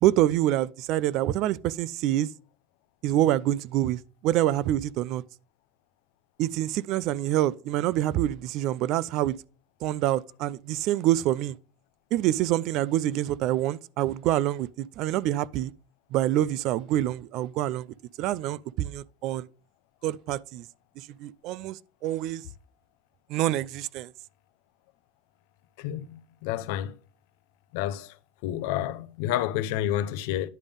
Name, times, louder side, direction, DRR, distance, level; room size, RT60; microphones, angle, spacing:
voice 1, 0.0-2.3 3.0-5.2 6.4-9.4 9.8-11.6 12.1-15.7 16.1-17.9 18.2-19.5 20.0-20.7 21.0-22.4 23.3-24.1, right 13 dB, 55° right, 0.3 m, -26 dB
voice 2, 25.8-26.9 27.7-28.1 28.4-30.5, left 12 dB, 80° left, 0.5 m, -29 dB
10.5 x 3.5 x 5.2 m
cardioid pair, 150°, 0 cm